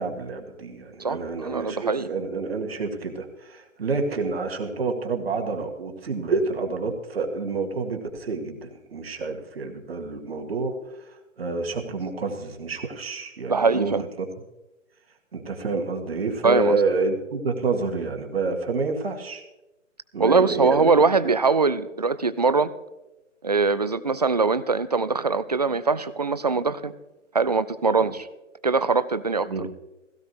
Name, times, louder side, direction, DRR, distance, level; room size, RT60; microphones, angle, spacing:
voice 1, 0.0-10.8 11.1-14.3 15.3-19.4 20.1-20.9 21.2-21.3 28.0-28.1 29.5-29.6, right 3 dB, 50° right, 4 dB, 1.9 m, -28 dB
voice 2, 1.0-2.1 13.5-14.0 16.4-16.8 20.2-22.7 23.4-26.9 27.3-28.3 28.6-29.7, right 4 dB, 35° right, 15 dB, 0.4 m, -22 dB
17.5 x 16.5 x 3.2 m, 1.0 s
figure-of-eight pair, 140°, 38 cm